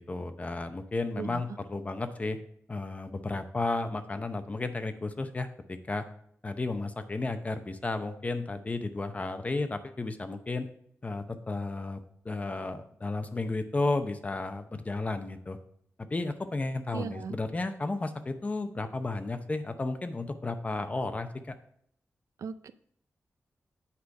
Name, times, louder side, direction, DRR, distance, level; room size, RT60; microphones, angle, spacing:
voice 1, 0.0-2.4 2.7-6.0 6.4-10.7 11.0-12.0 12.2-15.6 16.1-21.6, left 2 dB, 25° left, 9 dB, 0.6 m, -33 dB
voice 2, 16.9-17.3 22.4-22.7, right 6 dB, 80° right, 13 dB, 0.4 m, -37 dB
8.3 x 5.0 x 4.8 m, 0.67 s
wide cardioid pair, 135°, 5 cm